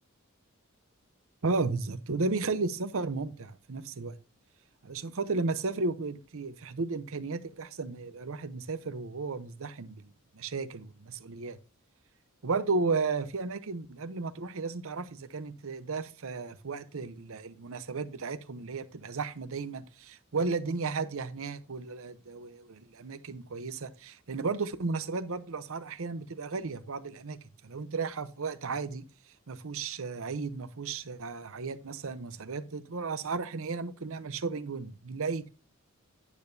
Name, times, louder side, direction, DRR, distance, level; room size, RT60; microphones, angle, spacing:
voice 1, 1.4-4.2 4.8-11.6 12.4-29.0 29.5-35.5, right 4 dB, 65° right, 0.7 m, -34 dB
10.0 x 6.8 x 2.6 m
head